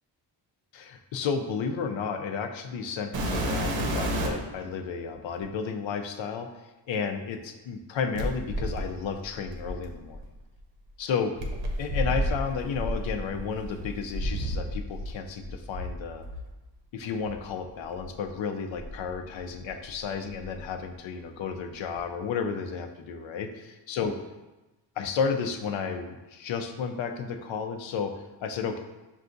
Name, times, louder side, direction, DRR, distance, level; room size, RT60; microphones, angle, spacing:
voice 1, 0.7-6.5 6.9-10.2 11.0-11.3 11.8-16.2 16.9-24.1 25.0-28.8, left 6 dB, 85° left, 5 dB, 0.5 m, -32 dB
sound 1, 3.1-4.5 5.4-5.5 8.1-10.2 11.4-15.1 15.4-16.5 17.2-17.4 18.0-18.1 18.8-19.9 20.1-20.6 21.9-22.0, equal, 80° right, 0.7 m, -31 dB
6.5 x 2.4 x 2.5 m, 1.1 s
wide cardioid pair, 165°, 45 cm